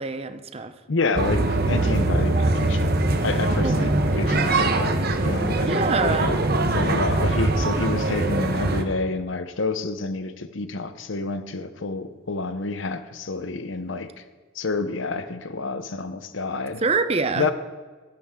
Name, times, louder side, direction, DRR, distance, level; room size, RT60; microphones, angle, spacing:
voice 1, 0.0-0.7 3.6-3.9 5.7-6.3 16.8-17.5, right 4 dB, 30° right, 10 dB, 0.7 m, -25 dB
voice 2, 0.9-2.9 3.2-6.4 6.7-14.2 14.5-16.8 17.3-17.5, left 3 dB, 80° left, 11 dB, 0.9 m, -29 dB
sound 1, 1.2-8.8, right 2 dB, 50° right, 1.0 m, -22 dB
17.5 x 12.5 x 3.7 m, 1.4 s
head